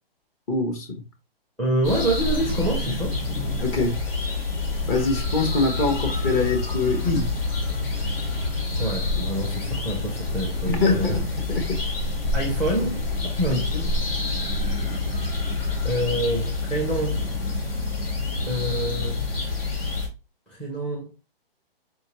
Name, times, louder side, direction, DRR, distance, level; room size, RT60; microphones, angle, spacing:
voice 1, 0.5-1.0 3.6-4.0 4.9-7.3 10.7-11.8 13.7-13.9, left 3 dB, 25° left, 0.9 m, -24 dB
voice 2, 1.6-3.2 8.8-11.2 12.3-13.1 13.4-13.7 15.8-17.2 18.5-19.2 20.5-21.1, right 1 dB, 5° left, 0.6 m, -26 dB
sound 1, 1.8-20.1, left 3 dB, 70° left, 1.8 m, -27 dB
4.4 x 2.7 x 2.9 m
hypercardioid pair, 135°, 30 cm